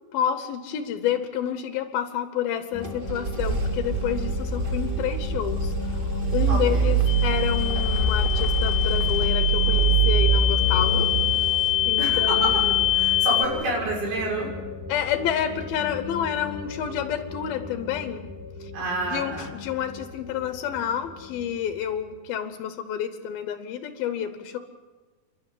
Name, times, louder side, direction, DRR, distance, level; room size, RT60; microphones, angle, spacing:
voice 1, 0.1-11.1 11.8-12.8 14.9-18.3 18.6-18.7 19.1-24.6, left 9 dB, 75° left, 8 dB, 3.0 m, -29 dB
sound 1, 2.7-22.2, left 4 dB, 5° left, 4.6 m, -38 dB
sound 2, 2.8-13.6, right 4 dB, 35° right, 0.8 m, -25 dB
voice 2, 6.5-6.9 12.0-12.5 12.9-14.5 18.7-19.5, right 1 dB, 85° right, -2 dB, 8.3 m, -28 dB
sound 3, 7.1-13.5, left 14 dB, 60° left, 2.1 m, -25 dB
29.5 x 12.0 x 9.9 m, 1.4 s
omnidirectional pair, 4.4 m